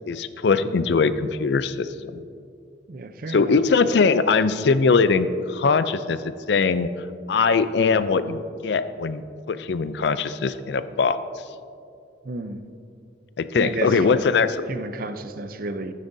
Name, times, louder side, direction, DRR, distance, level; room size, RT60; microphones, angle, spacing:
voice 1, 0.0-1.9 3.3-6.2 6.5-6.9 7.3-9.2 9.5-11.2 13.4-14.6, left 4 dB, 65° left, 13 dB, 0.4 m, -21 dB
voice 2, 2.9-4.0 12.2-12.6 13.5-14.3 14.7-15.9, right 2 dB, 50° right, 9 dB, 0.5 m, -32 dB
14.0 x 9.6 x 2.7 m, 2.4 s
head